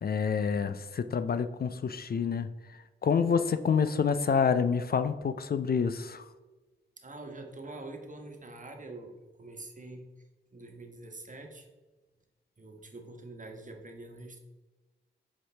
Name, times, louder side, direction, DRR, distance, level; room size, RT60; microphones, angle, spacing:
voice 1, 0.0-6.2, left 6 dB, 50° left, 11 dB, 0.4 m, -28 dB
voice 2, 7.0-10.1 10.5-11.7 12.6-14.4, right 2 dB, 40° right, 3 dB, 1.3 m, -45 dB
7.2 x 4.7 x 3.3 m, 1.2 s
cardioid pair, 45°, 20 cm